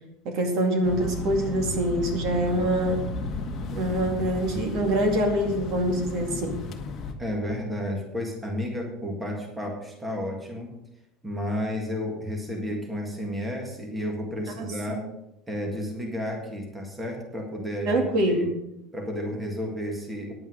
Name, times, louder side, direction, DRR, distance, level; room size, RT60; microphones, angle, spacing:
voice 1, 0.2-3.2 3.7-6.6 14.6-15.0 17.8-18.6, right 1 dB, 50° right, 3 dB, 2.3 m, -25 dB
sound 1, 0.8-7.1, left 2 dB, 30° left, 1.5 m, -34 dB
voice 2, 7.2-10.7 11.2-15.0 15.5-18.5 18.9-20.3, equal, 10° right, 1 dB, 1.8 m, -32 dB
9.9 x 8.7 x 6.4 m, 0.87 s
cardioid pair, 165°, 0 cm